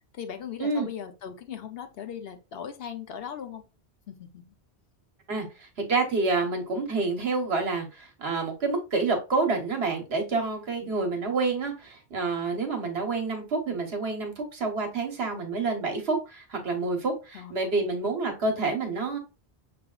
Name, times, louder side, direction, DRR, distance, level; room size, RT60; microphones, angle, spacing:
voice 1, 0.1-3.6 4.1-4.4 10.8-10.9 17.3-18.1, left 8 dB, 65° left, 0.9 m, -39 dB
voice 2, 5.9-19.2, right 3 dB, 70° right, 1.4 m, -28 dB
6.4 x 3.4 x 2.4 m
omnidirectional pair, 1.1 m